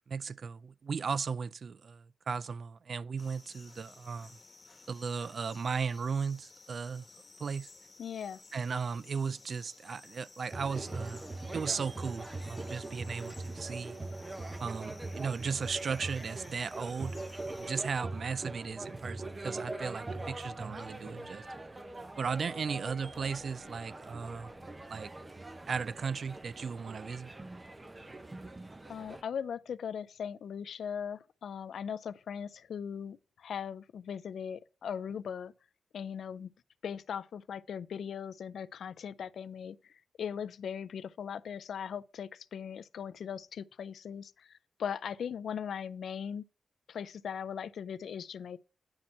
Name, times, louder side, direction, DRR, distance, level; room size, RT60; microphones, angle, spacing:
voice 1, 0.1-4.4 4.9-7.0 7.4-7.7 8.5-11.2 11.5-14.0 14.6-17.2 17.7-21.5 22.2-24.5 24.9-25.1 25.7-27.3, right 5 dB, 60° right, 0.3 m, -36 dB
sound 1, 3.2-17.7, left 3 dB, 35° left, 1.3 m, -56 dB
voice 2, 8.0-8.4 28.9-35.5 35.9-36.5 36.8-46.4 46.9-48.6, left 7 dB, 85° left, 0.4 m, -39 dB
sound 2, 9.4-9.5 11.4-15.3 22.5-26.5, right 2 dB, 40° right, 1.8 m, -60 dB
sound 3, 10.5-29.2, right 2 dB, 25° right, 0.8 m, -42 dB
9.6 x 4.4 x 4.2 m
cardioid pair, 95°, 0 cm